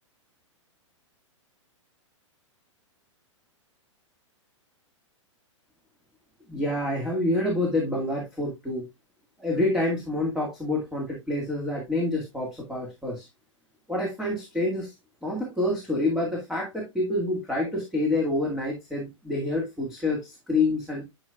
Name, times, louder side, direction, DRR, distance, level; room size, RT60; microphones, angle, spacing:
voice 1, 6.5-8.9 9.4-13.3 13.9-14.9 15.2-21.1, left 2 dB, 5° right, -3 dB, 2.2 m, -27 dB
10.5 x 5.2 x 2.5 m, 0.22 s
figure-of-eight pair, 105°, 16 cm